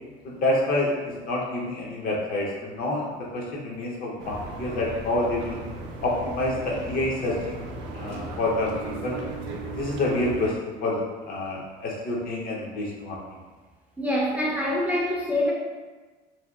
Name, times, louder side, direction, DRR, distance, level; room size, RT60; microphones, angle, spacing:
voice 1, 0.2-3.1 3.3-5.6 6.0-7.6 7.9-9.2 9.7-13.2, left 2 dB, 50° left, -3 dB, 0.6 m, -28 dB
sound 1, 4.2-10.5, right 2 dB, 85° right, 0.4 m, -36 dB
voice 2, 14.0-15.5, left 1 dB, 5° right, -6 dB, 0.3 m, -25 dB
2.7 x 2.1 x 2.2 m, 1.3 s
cardioid pair, 145°, 19 cm